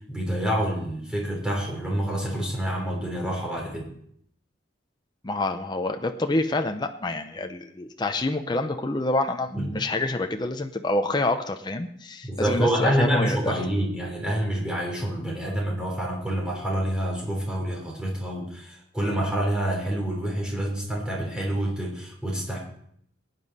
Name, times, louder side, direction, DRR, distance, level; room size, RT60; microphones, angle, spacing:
voice 1, 0.1-3.8 9.5-9.7 12.2-22.6, right 1 dB, 5° right, -2 dB, 3.4 m, -27 dB
voice 2, 5.2-13.5, left 2 dB, 25° left, 6 dB, 0.6 m, -27 dB
16.5 x 9.2 x 4.1 m, 0.69 s
head